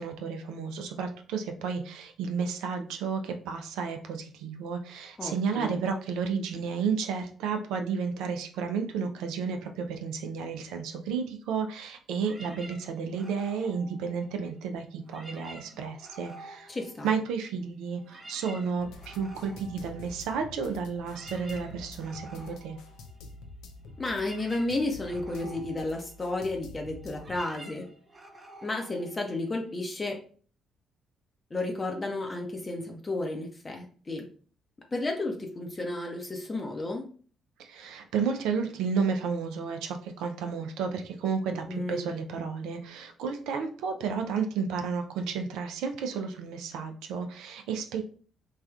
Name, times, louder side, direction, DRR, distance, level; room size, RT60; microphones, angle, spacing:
voice 1, 0.0-16.7 17.0-22.8 37.6-48.0, right 5 dB, 75° right, 5 dB, 0.3 m, -32 dB
voice 2, 5.2-5.8 16.7-17.1 24.0-27.8 28.6-30.2 31.5-34.3 34.9-37.1 41.7-42.1, left 2 dB, 30° left, 2 dB, 0.6 m, -32 dB
sound 1, 12.2-14.6 15.0-17.5 17.8-29.7, right 2 dB, 25° right, 0.7 m, -50 dB
sound 2, 18.8-27.4, left 2 dB, 70° left, 0.4 m, -47 dB
3.2 x 2.3 x 2.3 m, 0.43 s
hypercardioid pair, 45°, 0 cm